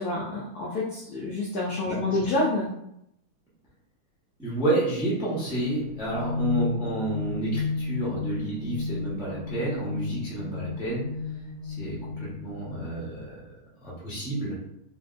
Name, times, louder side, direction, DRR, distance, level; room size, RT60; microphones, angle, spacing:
voice 1, 0.0-2.7, left 2 dB, 75° left, -5 dB, 0.9 m, -28 dB
voice 2, 1.8-2.2 4.4-11.0 11.6-13.3 13.8-14.5, right 2 dB, 5° right, -7 dB, 0.4 m, -30 dB
sound 1, 5.5-13.2, left 5 dB, 80° right, 0.6 m, -33 dB
3.4 x 2.6 x 2.5 m, 0.78 s
omnidirectional pair, 2.3 m